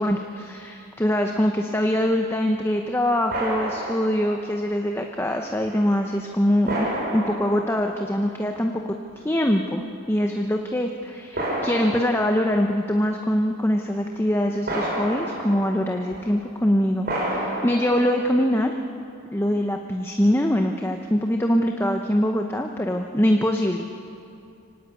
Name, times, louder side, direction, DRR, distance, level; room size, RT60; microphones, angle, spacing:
voice 1, 0.0-6.9 7.1-8.8 9.2-18.7 19.3-23.9, equal, 10° left, 3 dB, 0.9 m, -23 dB
sound 1, 3.3-4.5 5.6-5.8 6.6-8.3 9.2-9.3 11.3-12.8 14.7-16.3 17.0-18.6, right 1 dB, 45° right, 5.4 m, -30 dB
24.5 x 18.5 x 8.4 m, 2.6 s
head